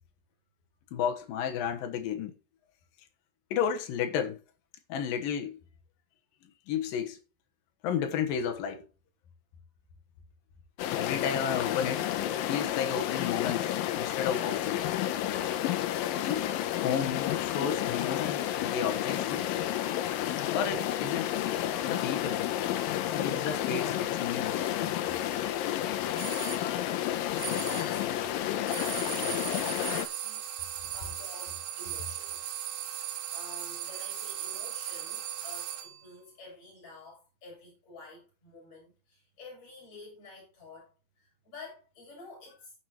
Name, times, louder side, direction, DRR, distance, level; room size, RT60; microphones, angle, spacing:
voice 1, 0.9-2.4 3.5-4.4 4.9-5.6 6.7-7.2 7.8-8.9 10.9-14.9 16.2-19.5 20.5-21.4 21.8-22.5 23.1-24.6, left 8 dB, 65° left, 2.6 m, -32 dB
sound 1, 10.8-30.1, left 12 dB, 80° left, 2.1 m, -31 dB
sound 2, 26.2-26.7 27.4-28.0 28.7-36.0, right 10 dB, 90° right, 3.6 m, -37 dB
voice 2, 26.6-27.3 27.7-30.4 30.9-42.7, left 3 dB, 40° left, 8.3 m, -50 dB
16.5 x 6.1 x 3.0 m
omnidirectional pair, 5.0 m